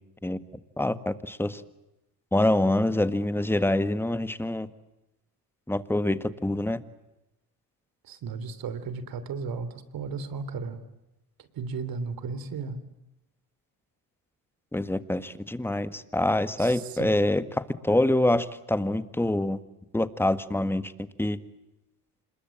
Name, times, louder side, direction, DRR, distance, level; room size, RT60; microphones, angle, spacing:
voice 1, 0.8-1.6 2.3-4.7 5.7-6.8 14.7-19.6 19.9-20.9 21.2-21.4, left 1 dB, 5° left, 12 dB, 1.7 m, -25 dB
voice 2, 8.0-10.8 11.4-12.8 16.6-17.2, right 5 dB, 65° right, 13 dB, 3.5 m, -35 dB
27.0 x 21.5 x 8.8 m, 0.93 s
cardioid pair, 90°, 38 cm